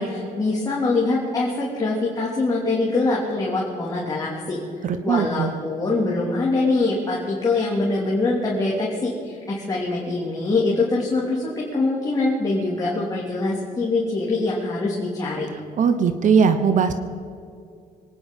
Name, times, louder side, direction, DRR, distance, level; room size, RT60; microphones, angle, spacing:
voice 1, 0.0-4.6 5.0-15.5, left 3 dB, 25° left, -4 dB, 3.0 m, -23 dB
voice 2, 4.8-5.5 15.8-16.9, right 6 dB, 55° right, 10 dB, 1.0 m, -19 dB
24.0 x 10.5 x 5.6 m, 2.4 s
cardioid pair, 125°, 16 cm